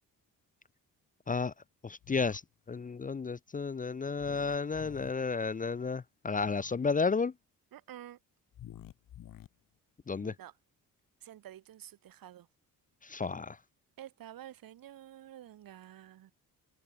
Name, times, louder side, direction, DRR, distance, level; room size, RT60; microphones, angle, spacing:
voice 1, 1.8-2.4 2.7-7.3 10.1-10.3 13.0-13.6, left 4 dB, 25° left, 0.6 m, -32 dB
sound 1, 2.0-2.4 4.2-5.1 6.4-6.7 8.5-9.5, left 11 dB, 70° left, 2.9 m, -50 dB
voice 2, 7.7-8.2 10.2-10.5 11.2-12.5 14.0-16.3, right 12 dB, 75° right, 6.2 m, -50 dB
cardioid pair, 90°, 34 cm